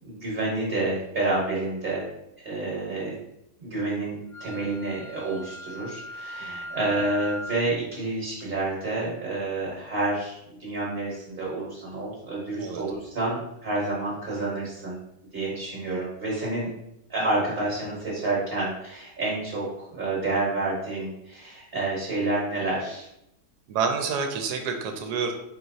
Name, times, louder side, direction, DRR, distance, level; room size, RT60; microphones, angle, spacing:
voice 1, 0.0-2.1 2.4-3.1 3.6-15.0 15.3-16.7 17.1-23.1, right 2 dB, 40° right, -5 dB, 1.1 m, -29 dB
Wind instrument woodwind instrument, 4.3-7.7, equal, 75° left, 0.4 m, -39 dB
voice 2, 23.7-25.3, right 5 dB, 80° right, 5 dB, 1.1 m, -28 dB
4.7 x 2.9 x 2.6 m, 0.83 s
omnidirectional pair, 1.8 m